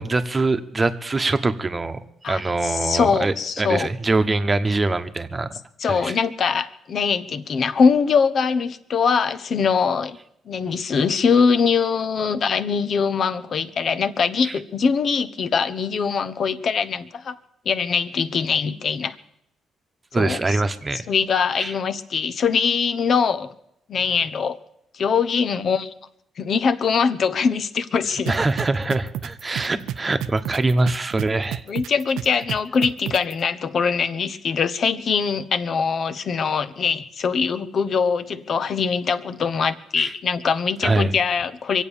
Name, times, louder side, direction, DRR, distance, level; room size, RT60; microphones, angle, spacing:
voice 1, 0.0-2.0 2.3-5.6 5.9-6.2 14.4-14.6 20.1-21.0 21.6-21.7 28.3-31.6 40.0-40.1 40.8-41.1, right 3 dB, 25° right, 9 dB, 1.1 m, -23 dB
voice 2, 2.2-3.9 5.8-10.2 10.5-17.3 17.6-19.2 20.1-20.6 21.1-23.5 23.9-24.6 24.9-25.9 26.4-28.4 31.7-41.8, left 6 dB, 55° left, 13 dB, 0.9 m, -22 dB
sound 1, 28.3-33.3, right 11 dB, 85° right, 0.5 m, -30 dB
23.5 x 8.3 x 7.1 m, 0.78 s
cardioid pair, 90°, 0 cm